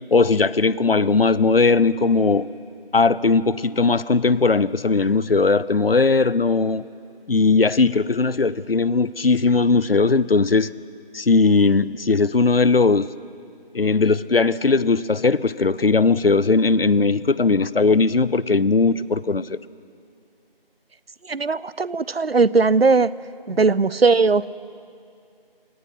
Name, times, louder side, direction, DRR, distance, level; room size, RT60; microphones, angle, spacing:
voice 1, 0.1-2.5 2.9-6.8 7.3-10.7 11.1-13.1 13.7-19.6, left 4 dB, 75° left, 19 dB, 0.7 m, -18 dB
voice 2, 21.3-23.1 23.5-24.5, right 4 dB, 80° right, 19 dB, 0.7 m, -18 dB
29.0 x 18.0 x 5.9 m, 2.4 s
figure-of-eight pair, 175°, 30 cm